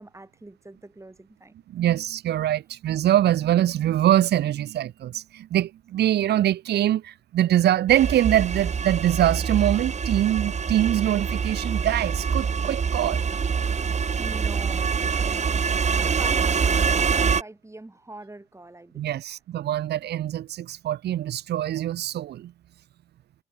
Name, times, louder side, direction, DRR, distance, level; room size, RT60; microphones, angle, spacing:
voice 1, 0.0-1.5 14.2-19.3, right 2 dB, 15° right, 7.4 m, -44 dB
voice 2, 1.7-13.2 19.0-22.5, right 12 dB, 85° right, 1.4 m, -23 dB
sound 1, 7.9-17.4, right 6 dB, 45° right, 1.3 m, -25 dB
cardioid pair, 75°, 17 cm